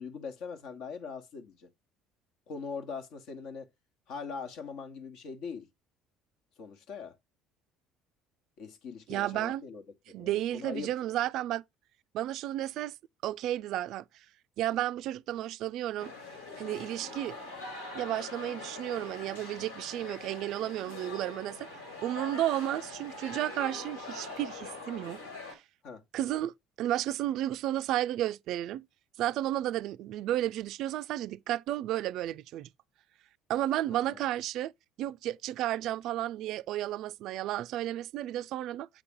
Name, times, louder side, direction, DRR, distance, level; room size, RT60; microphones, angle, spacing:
voice 1, 0.0-1.7 2.5-3.7 4.1-5.7 6.6-7.1 8.6-10.9 25.8-26.0 34.0-34.2, left 5 dB, 65° left, 1.2 m, -41 dB
voice 2, 9.1-9.6 10.1-11.6 12.1-12.9 13.2-14.0 14.6-16.1 16.6-17.4 17.9-21.7 22.0-25.2 25.5-25.6 26.1-28.8 29.2-32.7 33.5-34.7 35.0-38.9, right 13 dB, 60° right, 0.3 m, -32 dB
sound 1, 16.0-25.5, left 3 dB, 90° left, 2.4 m, -43 dB
7.5 x 4.0 x 3.6 m
hypercardioid pair, 60°, 0 cm